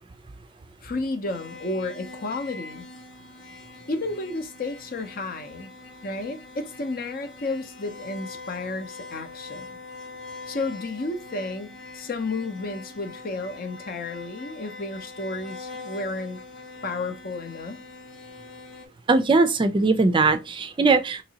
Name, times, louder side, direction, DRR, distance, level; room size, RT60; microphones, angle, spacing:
voice 1, 0.8-2.8 3.9-5.7 6.0-9.8 10.5-16.4 16.8-17.8, left 2 dB, 50° left, 0.6 m, -32 dB
sound 1, 1.3-18.9, left 3 dB, 70° left, 1.2 m, -43 dB
voice 2, 19.1-21.2, right 3 dB, 25° right, 0.4 m, -20 dB
3.8 x 2.9 x 2.7 m
head